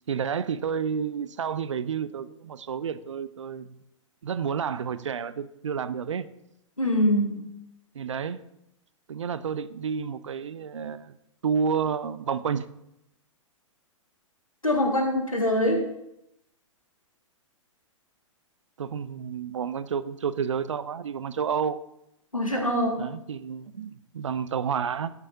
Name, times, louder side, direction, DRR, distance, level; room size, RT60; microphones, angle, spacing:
voice 1, 0.1-3.8 4.2-6.3 7.9-8.4 9.1-11.1 11.4-12.7 18.8-21.8 23.0-25.1, right 7 dB, 65° right, 0.6 m, -30 dB
voice 2, 6.8-7.5 14.6-15.9 22.3-23.1, left 1 dB, 90° left, 1.9 m, -24 dB
12.0 x 9.6 x 2.7 m
figure-of-eight pair, 110°, 17 cm